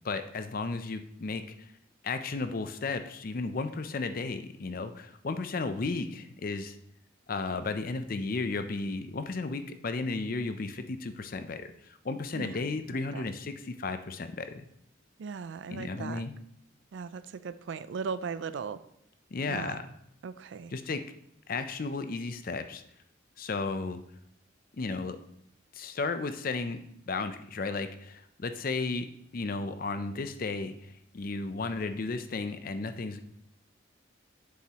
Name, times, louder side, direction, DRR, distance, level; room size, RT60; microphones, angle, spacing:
voice 1, 0.0-1.4 2.0-6.8 7.3-11.7 12.0-14.7 15.7-16.3 19.3-19.8 20.7-21.0 21.5-22.8 23.4-24.0 24.8-25.2 25.7-26.8 27.1-29.0 29.3-30.9 31.1-33.2, left 3 dB, 45° left, 10 dB, 0.5 m, -34 dB
voice 2, 12.9-13.3 15.2-16.2 16.9-18.8 19.5-19.8 20.2-20.7, right 5 dB, 65° right, 15 dB, 0.4 m, -38 dB
7.3 x 7.2 x 2.9 m, 0.73 s
head